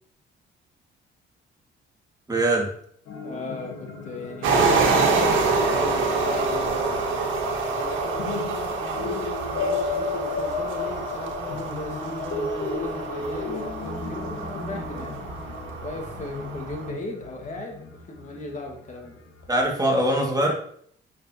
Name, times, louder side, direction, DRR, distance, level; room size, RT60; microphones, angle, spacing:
voice 1, 2.3-2.7 19.5-20.5, right 1 dB, 20° right, -1 dB, 2.2 m, -22 dB
sound 1, 3.1-19.8, left 4 dB, 85° left, 1.4 m, -34 dB
voice 2, 3.2-7.3 7.7-15.2 15.8-19.2, left 2 dB, 40° left, 1 dB, 1.9 m, -37 dB
sound 2, 4.4-16.9, right 4 dB, 75° right, 1.6 m, -26 dB
9.1 x 6.7 x 3.0 m, 0.64 s
cardioid pair, 90°, 20 cm